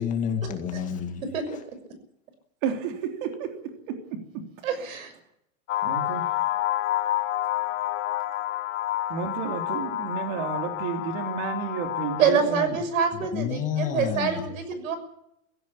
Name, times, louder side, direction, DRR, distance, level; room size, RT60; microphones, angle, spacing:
voice 1, 0.0-1.3 13.1-14.5, left 8 dB, 20° left, 5 dB, 2.0 m, -29 dB
voice 2, 2.6-4.9 5.8-6.3 9.1-12.8, right 6 dB, 40° right, 4 dB, 3.4 m, -32 dB
voice 3, 4.6-5.1 12.2-15.0, right 6 dB, 75° right, 10 dB, 6.4 m, -25 dB
sound 1, 5.7-12.3, left 14 dB, 60° left, 2.5 m, -29 dB
16.5 x 16.5 x 9.9 m, 0.77 s
supercardioid pair, 175°, 41 cm